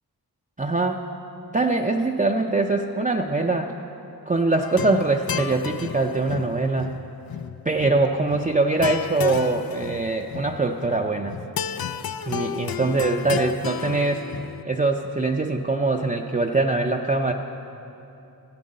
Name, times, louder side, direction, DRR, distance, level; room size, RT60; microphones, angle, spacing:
voice 1, 0.6-1.1 1.5-3.7 4.3-6.9 7.7-11.4 12.3-14.3 14.7-17.3, right 3 dB, 20° right, 1 dB, 0.5 m, -23 dB
sound 1, 4.6-14.6, left 8 dB, 70° left, 0.5 m, -32 dB
14.5 x 8.4 x 5.4 m, 2.9 s
wide cardioid pair, 50°, 38 cm